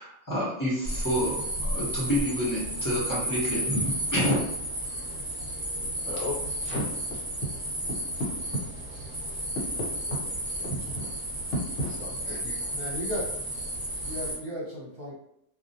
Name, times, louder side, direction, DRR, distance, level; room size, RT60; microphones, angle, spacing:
voice 1, 0.0-4.4, equal, 20° left, -7 dB, 0.5 m, -28 dB
sound 1, 0.8-14.4, right 1 dB, 20° right, 0.8 m, -33 dB
voice 2, 6.1-7.0 8.2-8.7 9.8-11.1 11.4-12.7, equal, 70° left, -4 dB, 1.1 m, -34 dB
voice 3, 12.7-13.4 13.8-15.1, equal, 50° right, -7 dB, 0.9 m, -35 dB
2.3 x 2.0 x 2.6 m, 0.75 s
omnidirectional pair, 1.4 m